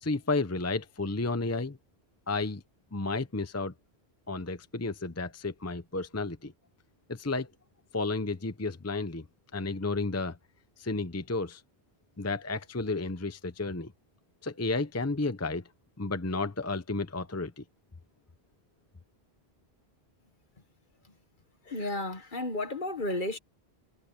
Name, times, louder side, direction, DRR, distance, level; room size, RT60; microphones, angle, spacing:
voice 1, 0.0-1.8 2.3-2.6 2.9-3.7 4.3-6.5 7.1-7.5 7.9-9.2 9.5-10.4 10.8-11.6 12.2-13.9 14.4-15.6 16.0-17.6, left 3 dB, 15° left, 0.8 m, -32 dB
voice 2, 21.7-23.4, left 2 dB, 50° left, 1.6 m, -32 dB
omnidirectional pair, 1.1 m